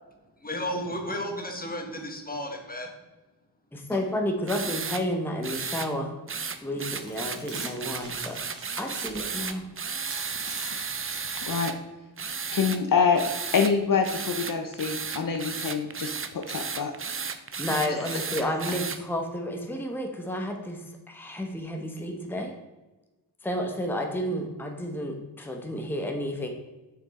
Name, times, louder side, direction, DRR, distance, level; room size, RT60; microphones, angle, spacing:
voice 1, 0.4-2.9, equal, 20° left, 3 dB, 1.4 m, -33 dB
voice 2, 3.7-6.2 6.6-8.4 8.8-9.7 17.6-22.5 23.4-26.5, left 1 dB, 5° left, 2 dB, 1.0 m, -31 dB
sound 1, 4.5-5.0 5.4-5.9 6.3-11.7 12.2-12.8 13.2-13.7 14.0-19.0, right 5 dB, 30° right, 0.6 m, -34 dB
sound 2, 6.4-6.5 6.8-11.3, right 2 dB, 80° right, 2.8 m, -44 dB
voice 3, 11.4-11.7 12.5-13.2 13.5-16.9 17.9-18.1, left 5 dB, 50° left, 4 dB, 0.8 m, -26 dB
7.2 x 6.0 x 4.2 m, 1.1 s
wide cardioid pair, 115°, 41 cm